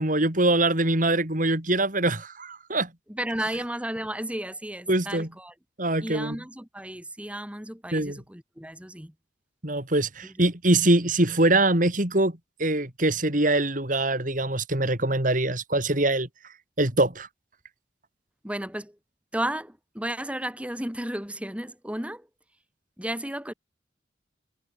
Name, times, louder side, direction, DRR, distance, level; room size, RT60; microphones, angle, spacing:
voice 1, 0.0-2.9 4.9-5.3 5.8-6.4 7.9-8.2 9.6-16.3 16.8-17.3, right 2 dB, 45° right, 3.7 m, -23 dB
voice 2, 3.1-5.5 6.0-9.1 10.2-10.3 18.4-18.9 19.3-22.3 23.0-23.5, right 1 dB, 5° right, 3.4 m, -33 dB
head